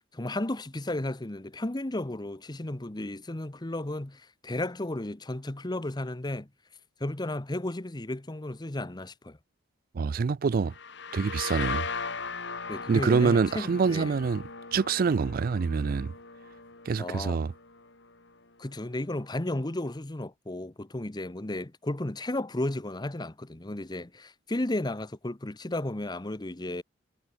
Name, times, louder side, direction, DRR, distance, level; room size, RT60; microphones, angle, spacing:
voice 1, 0.0-6.5 7.0-9.4 12.7-14.1 17.0-17.4 18.6-26.8, left 1 dB, 20° left, 1.0 m, -34 dB
voice 2, 9.9-10.7 11.1-11.8 12.9-14.4 14.7-16.1 16.9-17.5, right 5 dB, 50° right, 0.4 m, -25 dB
sound 1, 10.7-18.3, left 4 dB, 65° left, 5.1 m, -38 dB
head